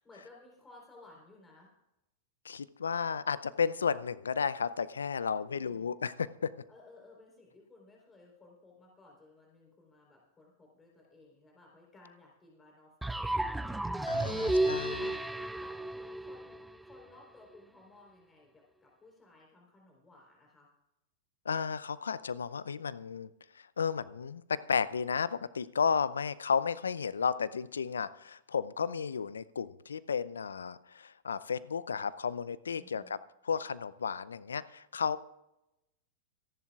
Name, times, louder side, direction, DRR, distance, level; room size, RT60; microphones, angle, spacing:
voice 1, 0.0-1.7 5.4-6.0 6.7-13.9 14.4-20.7 32.8-33.1, left 2 dB, 15° left, -1 dB, 4.0 m, -58 dB
voice 2, 2.4-6.5 14.1-15.0 21.5-23.3 23.5-33.2 33.4-35.2, left 6 dB, 80° left, 18 dB, 0.6 m, -33 dB
sound 1, 13.0-17.0, right 1 dB, 5° right, 0.5 m, -32 dB
27.0 x 11.0 x 2.5 m, 0.89 s
figure-of-eight pair, 100°, 0 cm